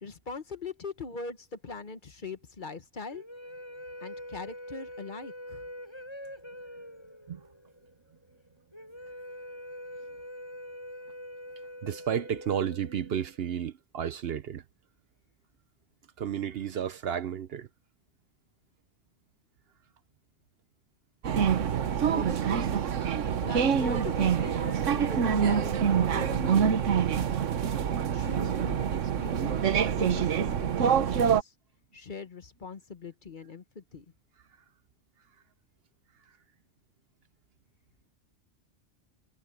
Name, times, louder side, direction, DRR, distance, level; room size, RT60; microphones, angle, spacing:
voice 1, 0.0-3.2 4.0-5.6 22.1-22.7 23.2-26.9 28.1-30.3 30.6-31.5 31.9-34.1, left 4 dB, 45° left, 1.2 m, -41 dB
sound 1, 3.1-13.5, equal, 20° left, 6.8 m, -44 dB
voice 2, 11.8-14.6 16.2-17.7, right 9 dB, 60° right, 0.8 m, -32 dB
sound 2, 21.2-31.4, right 7 dB, 85° right, 1.3 m, -26 dB
omnidirectional pair, 1.2 m